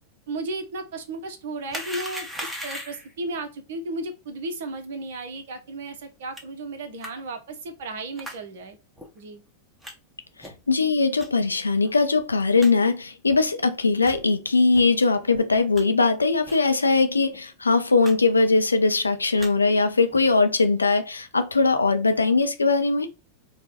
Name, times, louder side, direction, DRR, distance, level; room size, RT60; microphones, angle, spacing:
voice 1, 0.3-8.8 9.2-9.4, right 2 dB, 55° right, 0.8 m, -34 dB
sound 1, 1.7-3.1 6.4-6.5 7.0-7.1 8.2-8.4 9.0-9.1 9.8-9.9 10.4-10.7 11.2-11.3 11.8-11.9 12.2-12.3 12.6-12.7 13.3-13.4 14.0-14.2 14.7-14.8 15.3-15.8 16.4-16.7 16.9-17.0 17.3-17.5 18.0-18.1 18.4-18.8 19.2-19.5 20.1-20.3, equal, 5° right, 1.0 m, -38 dB
voice 2, 10.4-23.1, left 3 dB, 80° left, 0.4 m, -21 dB
4.7 x 2.2 x 4.1 m
figure-of-eight pair, 90°, 0 cm